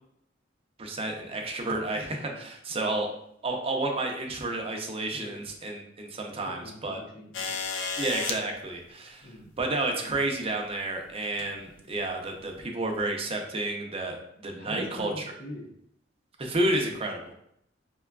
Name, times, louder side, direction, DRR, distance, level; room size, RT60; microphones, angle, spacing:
voice 1, 0.8-3.1 3.4-7.0 8.0-15.2 16.4-17.3, right 2 dB, 30° right, 2 dB, 0.6 m, -31 dB
voice 2, 1.9-2.4 5.1-5.4 6.5-7.6 9.2-9.6 10.0-10.3 11.8-11.9 14.6-15.7, equal, 50° left, 0 dB, 0.7 m, -43 dB
sound 1, 7.3-8.4 9.8-9.9 11.2-11.5 12.4-12.5, left 5 dB, 70° left, 0.4 m, -32 dB
5.4 x 2.2 x 2.3 m, 0.73 s
head